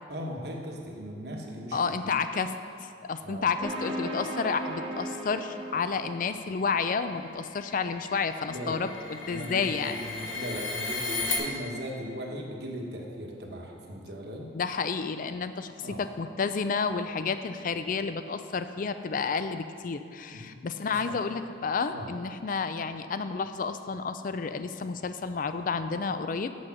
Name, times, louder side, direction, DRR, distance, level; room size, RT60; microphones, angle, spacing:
voice 1, 0.1-2.1 3.2-3.5 8.5-8.8 9.3-14.5 15.8-16.0 20.3-21.2 21.9-22.1, equal, 55° right, 0 dB, 1.2 m, -38 dB
voice 2, 1.7-2.5 2.8-10.0 14.5-26.5, left 5 dB, 45° left, 10 dB, 0.4 m, -31 dB
sound 1, 3.6-6.6, equal, 30° right, 1.0 m, -36 dB
sound 2, 6.6-11.4, left 3 dB, 90° left, 1.3 m, -36 dB
7.7 x 6.3 x 5.8 m, 2.3 s
head